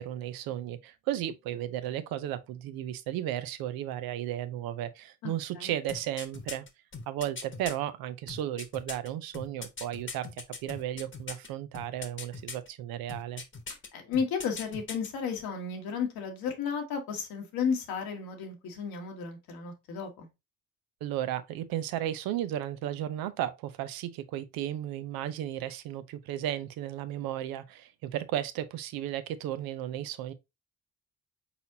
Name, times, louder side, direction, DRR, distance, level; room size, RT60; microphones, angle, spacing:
voice 1, 0.0-6.7 7.1-13.4 21.0-30.3, right 12 dB, 80° right, 0.6 m, -34 dB
voice 2, 5.2-5.7 13.9-20.3, left 6 dB, 80° left, 1.2 m, -33 dB
sound 1, 5.9-7.7 8.3-11.5 11.7-12.7 13.1-13.9 14.1-15.1 15.4-15.5, left 4 dB, 35° left, 1.0 m, -40 dB
4.2 x 4.2 x 2.6 m
supercardioid pair, 55°, 36 cm